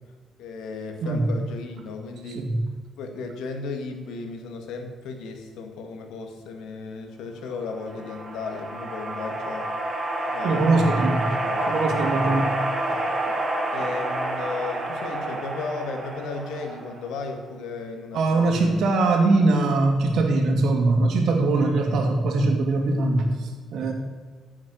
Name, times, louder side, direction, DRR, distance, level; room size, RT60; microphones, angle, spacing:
voice 1, 0.4-2.5 3.0-9.7 10.3-11.1 11.4-12.1 13.7-18.8, left 4 dB, 85° left, 5 dB, 2.0 m, -35 dB
voice 2, 2.3-2.6 10.4-11.2 11.6-12.6 18.1-23.9, right 2 dB, 75° right, 3 dB, 2.5 m, -22 dB
sound 1, 7.6-17.2, right 1 dB, 30° right, 3.8 m, -29 dB
14.5 x 7.2 x 6.3 m, 1.5 s
cardioid pair, 90°, 0 cm